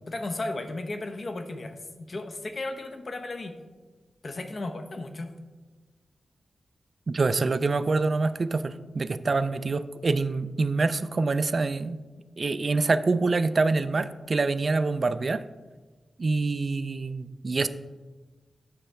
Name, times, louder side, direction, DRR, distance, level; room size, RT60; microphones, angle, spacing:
voice 1, 0.1-3.5 4.2-5.3, left 2 dB, 45° left, 6 dB, 0.8 m, -35 dB
voice 2, 7.1-12.0 12.4-15.4 16.2-17.7, right 3 dB, 45° right, 12 dB, 0.3 m, -26 dB
9.0 x 6.6 x 3.3 m, 1.3 s
wide cardioid pair, 100°, 0 cm